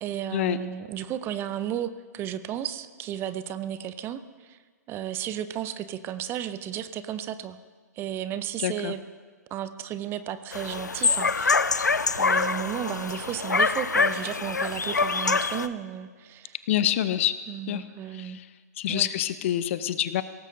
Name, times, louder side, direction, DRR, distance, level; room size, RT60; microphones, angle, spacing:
voice 1, 0.0-4.6 4.9-7.6 7.9-9.0 9.5-11.7 12.2-16.6 17.5-18.4 18.9-19.1, right 10 dB, 25° right, 13 dB, 0.6 m, -33 dB
voice 2, 8.6-8.9 16.7-17.3 17.7-17.8 18.1-18.3 18.8-20.2, left 12 dB, 45° left, 13 dB, 0.7 m, -26 dB
sound 1, 10.5-15.7, left 4 dB, 85° left, 0.5 m, -25 dB
22.0 x 18.0 x 2.6 m, 1.5 s
figure-of-eight pair, 115°, 9 cm